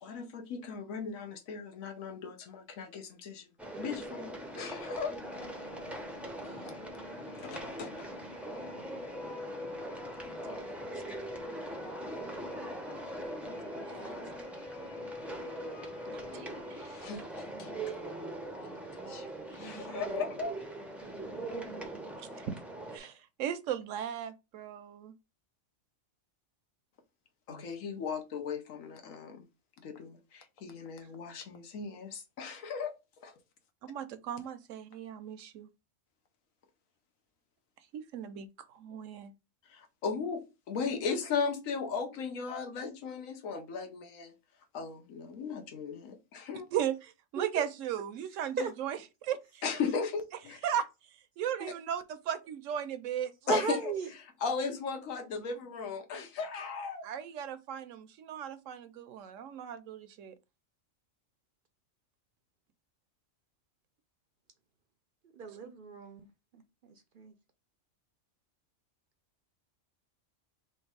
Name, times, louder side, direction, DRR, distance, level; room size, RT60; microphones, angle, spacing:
voice 1, 0.0-3.5 3.8-5.1 7.4-7.9 16.7-18.0 19.1-20.6 23.0-23.1 27.5-29.5 29.8-32.9 33.2-33.3 39.7-44.3 44.7-46.7 49.6-50.6 53.5-57.1, left 5 dB, 90° left, 1.2 m, -37 dB
sound 1, 3.6-23.0, right 2 dB, ahead, 0.4 m, -41 dB
sound 2, 5.2-17.2, left 4 dB, 50° left, 0.6 m, -47 dB
voice 2, 6.4-6.8 13.9-14.1 16.1-16.5 16.8-16.9 22.2-22.5 22.9-25.1 33.8-35.7 37.9-39.3 46.7-46.9 47.3-49.6 50.6-50.8 51.4-53.3 57.0-60.3 65.6-65.7, right 9 dB, 80° right, 0.9 m, -37 dB
voice 3, 53.5-54.1 65.4-66.3 66.5-66.6 67.2-67.3, right 4 dB, 60° right, 0.6 m, -34 dB
3.2 x 2.9 x 4.6 m
omnidirectional pair, 1.3 m